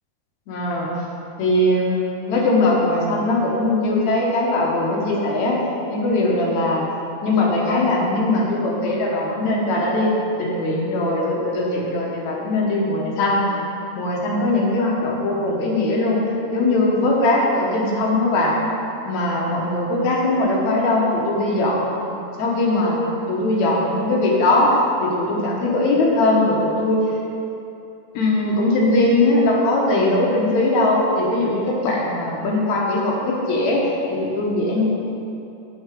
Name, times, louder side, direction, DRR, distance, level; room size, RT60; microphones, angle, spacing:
voice 1, 0.5-0.9 1.4-5.6 5.9-6.9 7.2-13.4 14.0-16.2 16.5-18.5 19.1-23.0 23.3-24.7 25.0-27.0 28.1-33.8 34.1-34.8, left 2 dB, 70° left, -3 dB, 2.4 m, -20 dB
7.9 x 7.5 x 3.6 m, 2.8 s
omnidirectional pair, 3.5 m